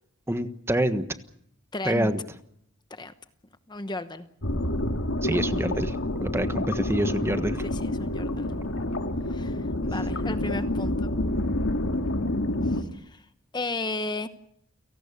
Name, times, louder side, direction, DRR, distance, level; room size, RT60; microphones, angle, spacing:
voice 1, 0.3-1.0 1.8-2.2 5.2-7.6, right 1 dB, 10° right, 10 dB, 1.3 m, -27 dB
voice 2, 1.7-2.1 2.9-3.1 3.7-4.3 7.6-8.5 9.3-11.1 12.6-13.3 13.5-14.3, left 2 dB, 20° left, 11 dB, 0.9 m, -34 dB
sound 1, 4.4-12.8, left 1 dB, 80° left, 2.2 m, -28 dB
30.0 x 18.0 x 6.9 m, 0.72 s
head